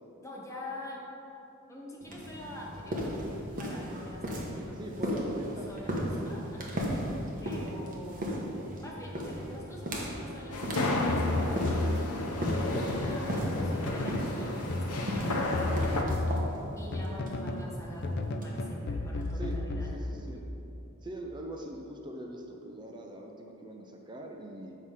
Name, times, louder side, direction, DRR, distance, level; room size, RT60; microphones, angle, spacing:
voice 1, 0.2-1.1 1.7-3.1 3.6-4.7 5.0-6.9 7.4-8.3 8.8-12.1 12.7-16.2 16.8-20.6, left 1 dB, 15° left, -4 dB, 1.2 m, -45 dB
sound 1, 2.0-19.5, equal, 35° right, 1.2 m, -36 dB
voice 2, 4.8-6.5 19.3-19.6 19.9-20.0 20.3-20.4 21.0-24.8, right 1 dB, 20° right, 1 dB, 0.5 m, -43 dB
sound 2, 10.5-16.0, left 2 dB, 85° left, 0.8 m, -33 dB
sound 3, 11.1-13.2 13.6-14.3 14.7-17.7 18.0-20.4, left 2 dB, 50° left, 0.5 m, -33 dB
7.4 x 4.8 x 5.6 m, 2.9 s
head